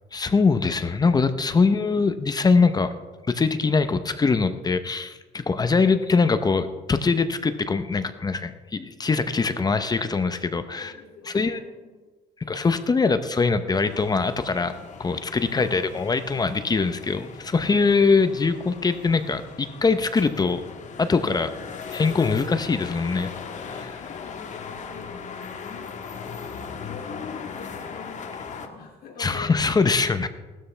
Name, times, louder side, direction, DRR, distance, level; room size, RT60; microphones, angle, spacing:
voice 1, 0.1-2.9 3.3-10.9 11.3-11.6 12.4-14.7 15.0-20.6 21.0-21.5 21.9-23.3 23.7-24.0 29.2-30.3, left 4 dB, 25° left, 10 dB, 0.8 m, -22 dB
voice 2, 10.8-12.1 15.4-16.1 21.2-21.7 24.0-29.6, left 4 dB, 70° left, -1 dB, 2.8 m, -45 dB
sound 1, 13.7-28.7, left 6 dB, 45° left, 1.5 m, -39 dB
18.0 x 13.0 x 3.4 m, 1.3 s
cardioid pair, 110°, 17 cm